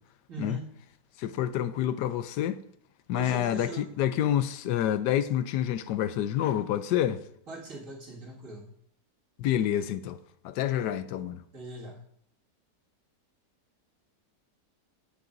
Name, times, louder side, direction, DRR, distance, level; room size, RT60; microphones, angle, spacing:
voice 1, 0.3-0.7 3.1-3.9 7.5-8.7 11.5-12.0, right 3 dB, 50° right, 2.4 m, -41 dB
voice 2, 1.2-2.6 3.1-7.2 9.4-10.2 10.4-11.4, left 11 dB, 80° left, 1.2 m, -28 dB
16.0 x 7.0 x 2.6 m
omnidirectional pair, 1.8 m